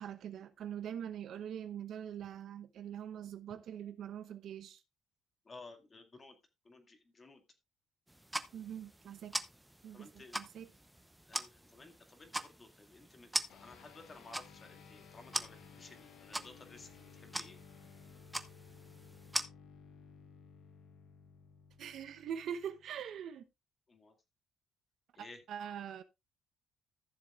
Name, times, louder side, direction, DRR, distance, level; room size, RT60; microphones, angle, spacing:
voice 1, 0.0-4.8 8.5-9.3 9.8-10.7 21.8-23.5 25.2-26.0, right 9 dB, 60° right, 0.9 m, -43 dB
voice 2, 5.5-6.4 6.6-7.4 9.9-10.4 11.3-17.6 23.9-24.1 25.1-25.4, left 3 dB, 25° left, 2.1 m, -55 dB
sound 1, 8.1-19.4, right 1 dB, 5° right, 0.8 m, -43 dB
sound 2, 13.5-23.2, left 6 dB, 70° left, 1.4 m, -57 dB
15.0 x 7.2 x 2.4 m
cardioid pair, 120°, 0 cm